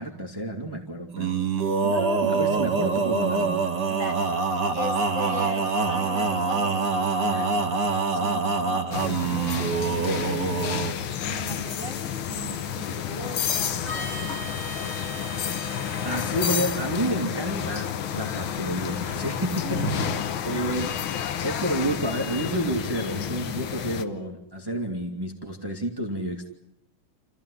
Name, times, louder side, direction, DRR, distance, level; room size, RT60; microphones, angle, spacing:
voice 1, 0.0-1.3 1.8-3.7 16.0-19.8 20.5-26.5, right 1 dB, 10° right, 1 dB, 2.1 m, -30 dB
Male singing, 1.1-10.9, right 4 dB, 55° right, 2.6 m, -25 dB
voice 2, 3.9-7.6 8.0-10.8 11.2-14.3 19.6-20.2, right 1 dB, 60° left, 0 dB, 7.3 m, -36 dB
sound 1, 8.9-24.0, left 9 dB, 85° left, 1.9 m, -30 dB
Harmonica, 13.8-18.6, left 1 dB, 25° left, 2.2 m, -39 dB
28.0 x 15.0 x 10.0 m, 0.88 s
omnidirectional pair, 2.2 m